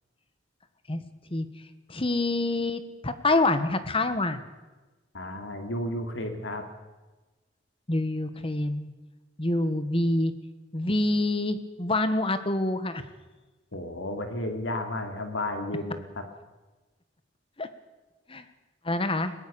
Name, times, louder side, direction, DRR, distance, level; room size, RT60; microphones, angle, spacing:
voice 1, 1.9-4.4 7.9-8.9 9.4-10.3 10.7-13.0 17.6-17.7 18.3-18.4 18.8-19.3, left 2 dB, 30° left, 11 dB, 1.5 m, -26 dB
voice 2, 5.1-6.7 13.7-16.0, left 1 dB, 90° left, 6 dB, 2.7 m, -32 dB
21.5 x 18.0 x 7.0 m, 1.2 s
head